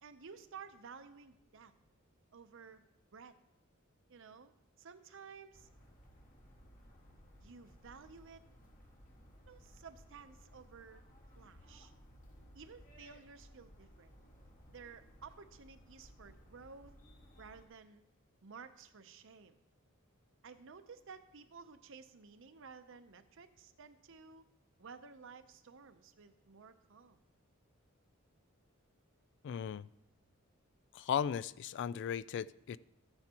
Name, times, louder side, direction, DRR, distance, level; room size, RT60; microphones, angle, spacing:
voice 1, 0.0-1.7 2.3-2.8 3.1-3.4 4.1-4.5 4.8-5.7 7.4-8.4 9.5-11.1 11.3-11.9 12.5-14.1 14.7-16.9 17.4-18.0 18.4-19.6 20.4-24.4 24.8-27.2, right 5 dB, 65° right, 10 dB, 0.7 m, -54 dB
sound 1, 5.5-17.6, equal, 40° left, 1.7 m, -59 dB
voice 2, 29.4-29.9 30.9-32.8, left 8 dB, 60° left, 18 dB, 0.3 m, -36 dB
14.0 x 9.6 x 2.9 m, 0.83 s
head